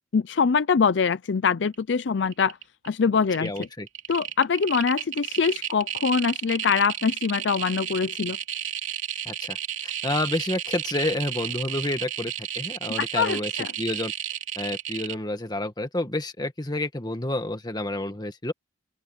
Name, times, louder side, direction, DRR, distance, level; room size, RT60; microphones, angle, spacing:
voice 1, 0.0-2.6 2.8-3.7 4.1-8.4 13.0-13.7, left 5 dB, 65° left, 0.5 m, -24 dB
sound 1, 1.7-2.0 2.3-2.9 3.2-15.1, right 10 dB, 90° right, 3.0 m, -32 dB
voice 2, 3.4-3.9 9.3-13.5 13.8-14.1 14.6-18.5, left 1 dB, 20° left, 1.8 m, -29 dB
open air
head